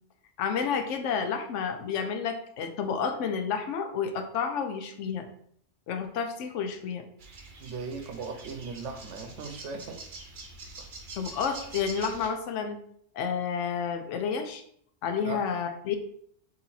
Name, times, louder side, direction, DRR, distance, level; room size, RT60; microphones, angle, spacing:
voice 1, 0.4-5.3 5.9-7.1 11.2-12.8 13.1-14.6 15.0-16.0, left 6 dB, 75° left, 6 dB, 0.9 m, -30 dB
sound 1, 7.2-12.3, right 3 dB, 45° right, 0.8 m, -45 dB
voice 2, 7.6-10.0 15.2-15.4, right 4 dB, 75° right, 5 dB, 1.0 m, -37 dB
4.1 x 2.8 x 4.1 m, 0.66 s
omnidirectional pair, 1.3 m